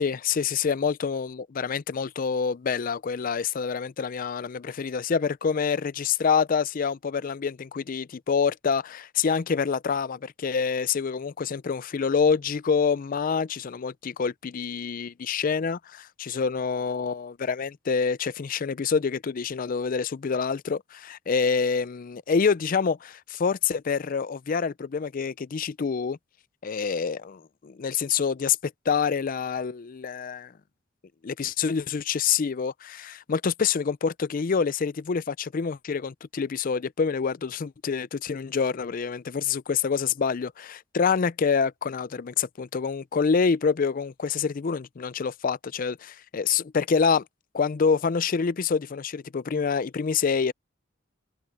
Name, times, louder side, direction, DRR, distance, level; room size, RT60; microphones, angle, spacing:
voice 1, 0.0-26.2 26.6-30.5 31.2-47.2 47.5-50.5, left 6 dB, 45° left, 0.4 m, -26 dB
head